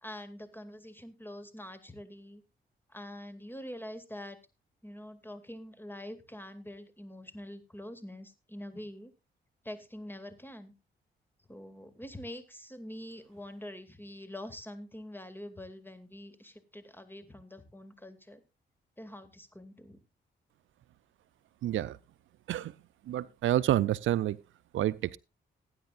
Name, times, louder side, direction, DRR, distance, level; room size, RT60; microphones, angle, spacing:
voice 1, 0.0-2.4 2.9-4.4 4.8-9.1 9.6-10.7 11.5-18.4 19.0-20.0, left 1 dB, 10° left, 2.3 m, -45 dB
voice 2, 21.6-22.0 22.5-22.7 23.1-24.4 24.7-25.2, right 13 dB, 80° right, 0.5 m, -28 dB
19.0 x 9.6 x 2.5 m
cardioid pair, 60°, 20 cm